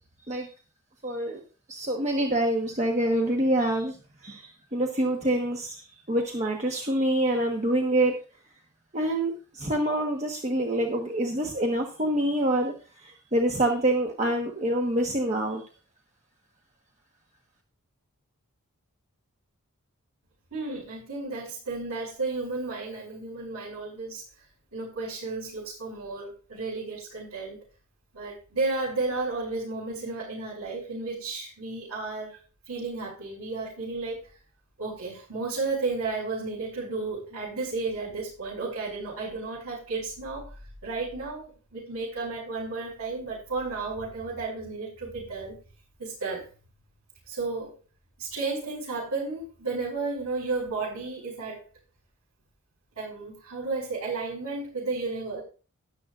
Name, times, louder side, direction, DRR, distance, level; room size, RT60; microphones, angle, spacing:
voice 1, 1.0-1.4 1.7-4.0 4.2-5.8 6.1-8.1 8.9-12.7 13.0-15.6, right 1 dB, 30° right, 1 dB, 1.2 m, -26 dB
voice 2, 20.5-24.2 24.7-27.6 28.1-32.4 32.7-34.3 34.8-40.5 40.8-41.5 41.7-45.5 46.0-46.5 47.3-47.7 48.2-51.6 53.0-55.4, right 3 dB, 75° right, -8 dB, 6.1 m, -33 dB
13.0 x 11.0 x 2.5 m, 0.36 s
head